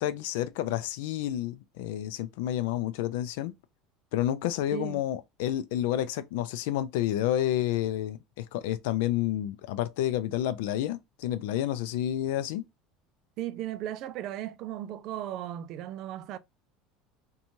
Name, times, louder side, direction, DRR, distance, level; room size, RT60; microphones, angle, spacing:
voice 1, 0.0-3.5 4.1-12.6, left 12 dB, 80° left, 0.4 m, -30 dB
voice 2, 13.4-16.4, right 12 dB, 50° right, 0.3 m, -36 dB
2.6 x 2.3 x 2.9 m
cardioid pair, 140°, 0 cm